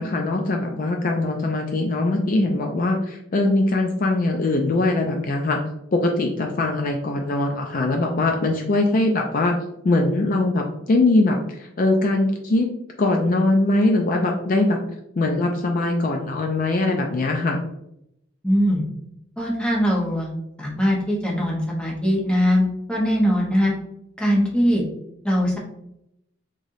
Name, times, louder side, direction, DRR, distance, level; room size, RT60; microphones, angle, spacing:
voice 1, 0.0-5.6 5.9-9.5 9.8-12.7 13.0-14.8 15.2-17.6, left 2 dB, 45° left, 2 dB, 0.4 m, -21 dB
voice 2, 18.4-18.8 19.4-20.3 20.6-23.7 24.2-24.8 25.2-25.6, equal, 5° left, -3 dB, 0.9 m, -21 dB
3.7 x 3.3 x 2.6 m, 0.81 s
head